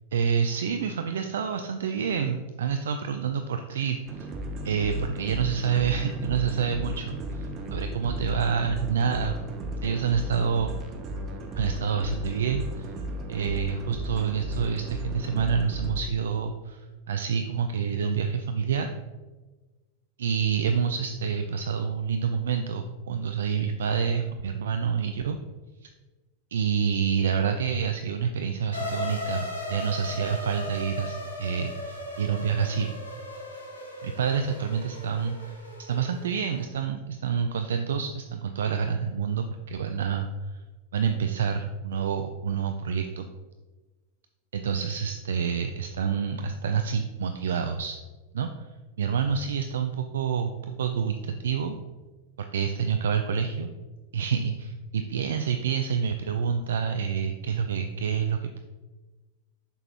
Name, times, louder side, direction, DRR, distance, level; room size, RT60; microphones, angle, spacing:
voice 1, 0.1-4.3 4.6-9.4 9.8-10.7 11.6-12.9 13.3-16.8 17.1-18.9 20.2-25.4 25.8-25.9 26.5-32.9 34.0-35.6 35.9-40.6 40.9-43.3 44.5-48.0 48.3-48.5 49.0-50.5 50.8-51.8 52.4-53.7 54.1-58.6, right 7 dB, 65° right, 7 dB, 0.4 m, -28 dB
sound 1, 4.1-16.0, equal, 35° right, 0.9 m, -35 dB
sound 2, 28.7-36.6, left 2 dB, 80° left, 1.4 m, -37 dB
7.0 x 5.8 x 2.9 m, 1.2 s
figure-of-eight pair, 90°, 0 cm